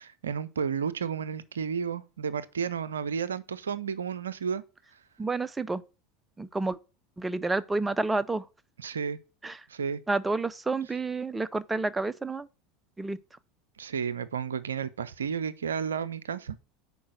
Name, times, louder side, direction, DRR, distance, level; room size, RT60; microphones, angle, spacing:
voice 1, 0.0-4.6 8.8-9.2 9.7-10.0 13.8-16.6, right 6 dB, 80° right, 0.4 m, -32 dB
voice 2, 5.2-5.8 6.4-6.8 7.2-8.4 9.4-9.6 10.1-12.5 13.0-13.2, right 3 dB, 15° right, 0.4 m, -29 dB
5.2 x 4.7 x 6.2 m
figure-of-eight pair, 80°, 0 cm